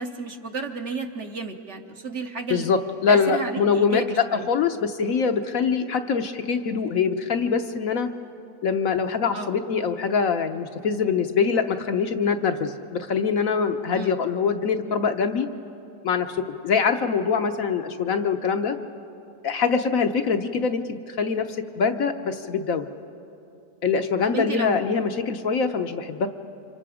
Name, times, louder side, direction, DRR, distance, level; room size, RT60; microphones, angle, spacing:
voice 1, 0.0-2.7 3.1-4.5 9.3-9.5 13.9-14.2 24.3-24.9, right 4 dB, 50° right, 5 dB, 1.1 m, -32 dB
voice 2, 2.5-8.1 8.6-15.5 16.0-18.8 19.4-22.8 23.8-26.3, left 5 dB, 60° left, 6 dB, 1.1 m, -24 dB
29.5 x 25.5 x 5.0 m, 2.7 s
omnidirectional pair, 1.8 m